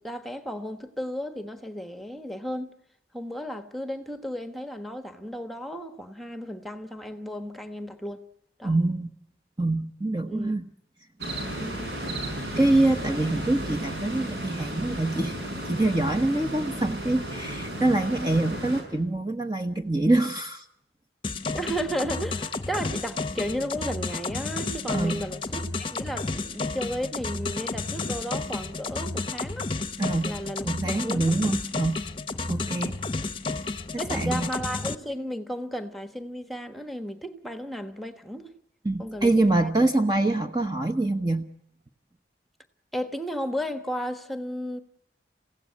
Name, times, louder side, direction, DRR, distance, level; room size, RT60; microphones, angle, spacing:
voice 1, 0.0-2.7 3.1-8.3 8.6-8.7 10.2-10.5 11.6-12.0 21.5-29.7 30.2-31.3 34.0-38.5 39.0-39.7 42.9-44.8, equal, ahead, 1.3 m, -34 dB
voice 2, 8.6-9.1 9.6-10.7 12.6-15.4 15.7-20.7 24.9-25.2 30.0-30.3 30.6-32.0 32.5-33.0 33.9-34.5 38.8-41.5, right 2 dB, 25° right, 1.0 m, -25 dB
sound 1, 11.2-18.8, right 1 dB, 70° right, 6.2 m, -34 dB
sound 2, 21.2-34.9, left 3 dB, 30° left, 0.9 m, -32 dB
29.0 x 16.5 x 9.7 m
head